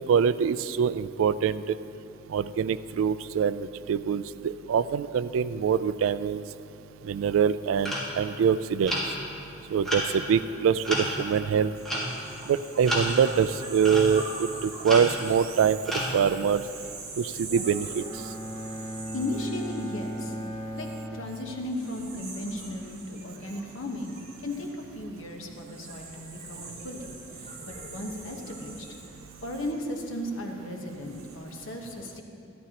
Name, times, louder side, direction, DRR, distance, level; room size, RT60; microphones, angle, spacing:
voice 1, 0.0-1.8 2.3-6.4 7.0-9.2 9.7-11.7 12.4-16.7 17.2-18.3, right 7 dB, 80° right, 16 dB, 0.3 m, -25 dB
sound 1, 7.8-8.1 8.9-9.3 9.9-10.1 10.8-11.4 11.9-12.3 12.8-13.3 13.8-14.1 14.8-15.3 15.9-16.2, equal, ahead, 1.8 m, -30 dB
sound 2, 11.7-21.0 21.6-30.3 30.8-31.3, right 2 dB, 35° right, 1.8 m, -44 dB
Bowed string instrument, 17.9-22.0, right 1 dB, 40° left, 2.6 m, -37 dB
voice 2, 19.1-20.3 20.8-24.2 24.4-28.8 29.4-32.2, left 1 dB, 80° left, 1 dB, 1.2 m, -36 dB
13.0 x 12.5 x 2.9 m, 2.7 s
head